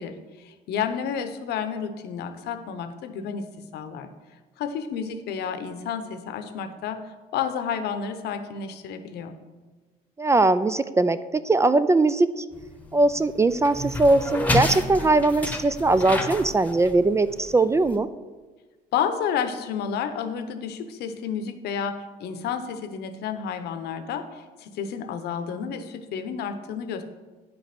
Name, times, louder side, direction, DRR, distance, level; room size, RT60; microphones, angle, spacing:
voice 1, 0.0-4.1 4.6-9.4 18.9-27.0, left 7 dB, 75° left, 9 dB, 0.9 m, -31 dB
voice 2, 10.2-11.2 11.4-12.4 12.9-18.1, right 2 dB, 15° right, 13 dB, 0.3 m, -20 dB
sound 1, 12.5-17.9, left 1 dB, 10° left, 1.1 m, -30 dB
9.8 x 5.3 x 5.9 m, 1.3 s
cardioid pair, 110°, 17 cm